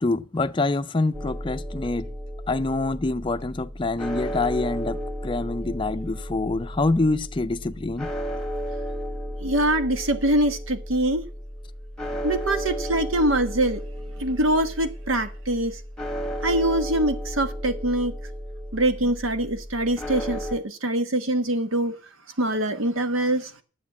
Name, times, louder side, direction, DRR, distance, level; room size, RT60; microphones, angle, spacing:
voice 1, 0.0-2.1 2.5-8.1, left 2 dB, 25° left, 0.4 m, -26 dB
sound 1, 1.1-20.6, equal, 5° left, 1.2 m, -33 dB
voice 2, 9.4-11.2 12.2-13.8 14.2-15.7 16.4-18.1 18.7-21.9 22.4-23.5, right 1 dB, 90° right, 1.2 m, -24 dB
9.6 x 7.1 x 7.2 m
head